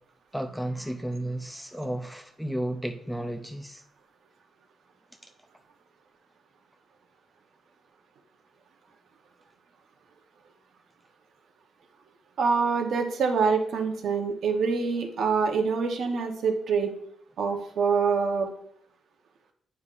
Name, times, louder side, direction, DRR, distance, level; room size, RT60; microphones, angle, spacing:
voice 1, 0.3-3.8, right 1 dB, ahead, 0.4 m, -33 dB
voice 2, 12.4-16.9 17.4-18.5, right 5 dB, 60° right, 0.9 m, -25 dB
9.4 x 5.5 x 2.5 m
wide cardioid pair, 170°, 0 cm